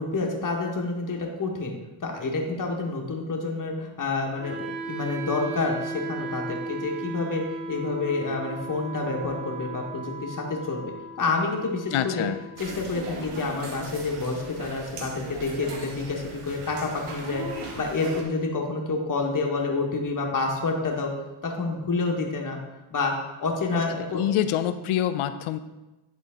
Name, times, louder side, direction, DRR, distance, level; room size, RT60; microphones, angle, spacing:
voice 1, 0.0-1.7 2.0-7.4 7.7-12.3 12.6-17.4 17.7-21.1 21.4-22.6 22.9-23.1 23.4-24.2, left 3 dB, 40° left, 0 dB, 1.6 m, -28 dB
Wind instrument woodwind instrument, 4.4-14.4, right 2 dB, 70° right, 1.5 m, -37 dB
voice 2, 11.9-12.4 23.7-23.8 24.1-25.6, left 11 dB, 80° left, 11 dB, 0.6 m, -26 dB
sound 1, 12.6-18.2, right 3 dB, 90° right, 1.3 m, -38 dB
10.5 x 3.8 x 3.7 m, 1.1 s
supercardioid pair, 65°, 50 cm